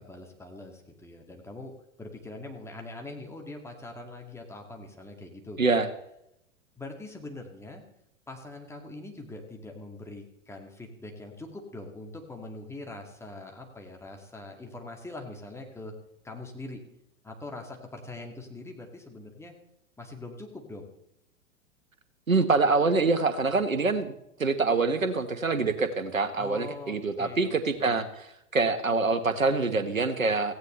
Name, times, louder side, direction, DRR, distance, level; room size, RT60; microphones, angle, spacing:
voice 1, 0.0-5.8 6.8-7.8 8.3-15.9 16.2-16.8 17.2-19.5 20.0-20.9 26.4-28.0, left 2 dB, 5° left, 2 dB, 2.3 m, -43 dB
voice 2, 22.3-24.1 24.4-28.0 28.5-30.5, right 3 dB, 80° right, 10 dB, 1.5 m, -25 dB
17.0 x 15.5 x 3.3 m, 0.78 s
figure-of-eight pair, 100°, 40 cm